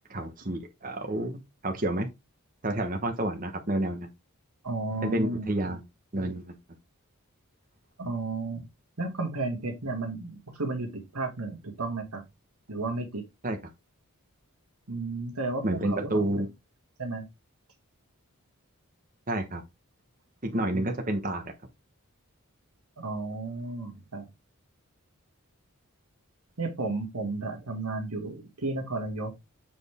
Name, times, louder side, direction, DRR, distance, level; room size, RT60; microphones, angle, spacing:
voice 1, 0.1-2.1 2.6-4.1 5.0-5.8 6.1-6.5 13.4-13.6 15.6-16.5 19.3-19.6 20.4-21.4, right 1 dB, 40° right, 1.2 m, -29 dB
voice 2, 4.6-5.5 8.0-8.6 9.0-12.2 12.7-13.2 14.9-16.3 17.0-17.2 20.7-20.9 23.0-24.3 26.6-29.4, right 3 dB, 90° right, 2.3 m, -33 dB
7.7 x 4.3 x 3.6 m
head